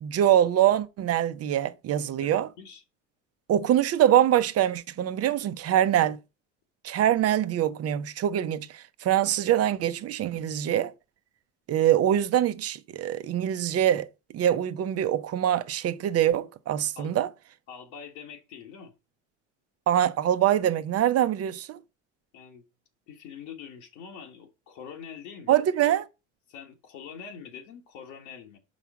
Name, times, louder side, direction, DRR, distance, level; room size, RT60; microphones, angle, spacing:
voice 1, 0.0-2.5 3.5-6.2 6.8-10.9 11.7-17.3 19.9-21.8 25.5-26.0, right 11 dB, 45° right, 0.8 m, -24 dB
voice 2, 2.2-2.8 16.9-17.2 17.7-18.9 22.3-22.6 23.1-25.6 25.8-25.9 26.5-28.6, left 7 dB, 75° left, 1.7 m, -44 dB
5.6 x 4.9 x 6.1 m
supercardioid pair, 90°, 35 cm